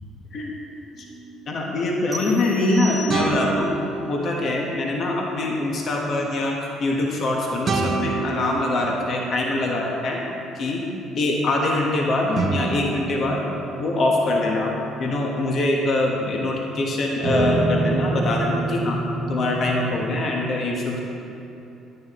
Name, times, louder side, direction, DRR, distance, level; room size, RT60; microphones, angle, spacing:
sound 1, 1.1-1.2 3.1-4.8 7.6-10.0 12.3-16.7 17.2-20.4, right 3 dB, 45° right, 1.1 m, -28 dB
voice 1, 1.5-3.7 4.1-10.2 10.5-10.8 11.1-13.4 13.8-14.7 15.0-19.0 19.3-21.0, left 2 dB, 55° left, -1 dB, 1.2 m, -23 dB
sound 2, 2.1-3.6, right 1 dB, 20° right, 1.5 m, -36 dB
10.0 x 9.2 x 3.1 m, 2.9 s
supercardioid pair, 75°, 0 cm